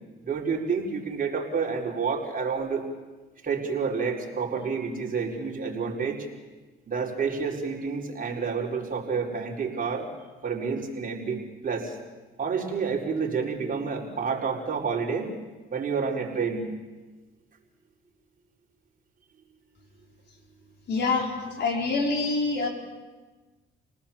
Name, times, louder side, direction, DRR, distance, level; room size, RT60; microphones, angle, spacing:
voice 1, 0.2-2.9 3.4-6.3 6.9-10.1 10.4-12.0 12.4-15.3 15.7-16.7, right 5 dB, 45° right, -2 dB, 5.0 m, -29 dB
voice 2, 20.9-21.3 21.6-22.7, left 3 dB, 60° left, 0 dB, 5.3 m, -25 dB
29.0 x 19.0 x 7.4 m, 1.3 s
cardioid pair, 90°, 20 cm